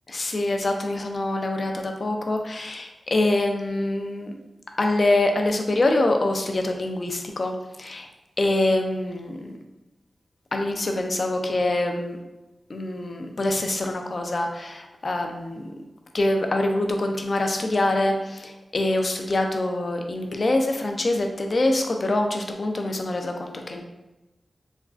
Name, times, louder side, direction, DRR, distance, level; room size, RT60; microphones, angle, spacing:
voice 1, 0.1-4.3 4.8-7.5 7.8-8.1 8.4-9.5 10.5-12.2 12.7-15.6 16.1-23.8, left 2 dB, 55° left, 3 dB, 0.4 m, -25 dB
3.3 x 2.3 x 2.4 m, 1.0 s
cardioid pair, 45°, 0 cm